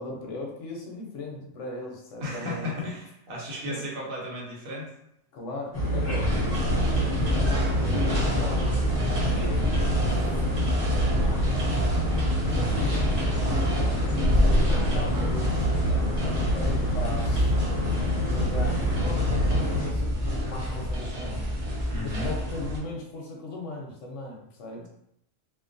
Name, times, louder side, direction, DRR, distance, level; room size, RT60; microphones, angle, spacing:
voice 1, 0.0-2.7 3.6-3.8 5.3-10.2 11.2-11.5 12.3-16.2 16.5-17.6 18.3-21.5 22.0-24.9, left 2 dB, 70° left, -1 dB, 0.8 m, -38 dB
voice 2, 2.2-4.9 9.2-9.5 21.9-22.3, left 1 dB, 80° right, -3 dB, 1.2 m, -35 dB
sound 1, 5.7-19.9, equal, 30° left, 0.9 m, -27 dB
sound 2, 6.2-22.8, equal, 60° right, 0.4 m, -27 dB
sound 3, 13.7-19.7, right 1 dB, 10° left, 0.4 m, -41 dB
2.5 x 2.2 x 2.5 m, 0.77 s
omnidirectional pair, 1.4 m